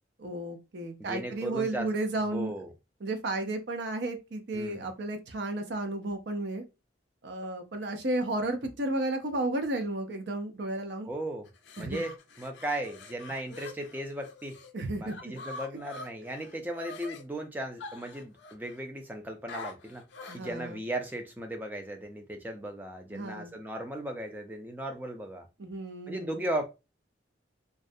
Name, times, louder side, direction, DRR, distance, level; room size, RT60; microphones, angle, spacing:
voice 1, 0.2-2.5 3.0-6.6 7.2-11.1 11.8-12.0 14.7-15.3 20.3-20.8 23.1-23.5 25.6-26.4, right 2 dB, 65° right, 0.5 m, -33 dB
voice 2, 1.0-1.9 2.3-2.7 4.5-4.9 11.1-11.5 11.8-14.6 15.0-20.0 20.3-25.5 26.1-26.6, right 1 dB, 10° right, 0.3 m, -36 dB
sound 1, 11.5-14.7 15.1-17.2 17.8-18.8 19.5-20.5, left 3 dB, 70° left, 0.4 m, -45 dB
2.3 x 2.1 x 2.6 m
head